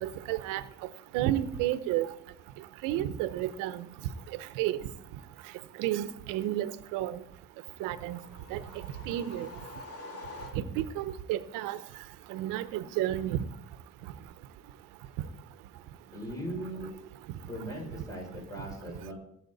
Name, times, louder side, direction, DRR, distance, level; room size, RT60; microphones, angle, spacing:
voice 1, 0.0-0.6 1.1-2.1 2.8-3.8 4.6-4.8 5.8-7.2 7.8-8.2 8.5-8.6 9.1-9.5 10.6-11.8 12.3-13.4, right 13 dB, 85° right, 0.9 m, -31 dB
sound 1, 7.8-11.0, left 2 dB, 45° left, 2.4 m, -47 dB
voice 2, 16.1-16.9 17.5-19.1, right 1 dB, 10° left, 5.8 m, -39 dB
16.5 x 7.4 x 4.1 m
cardioid pair, 110°, 32 cm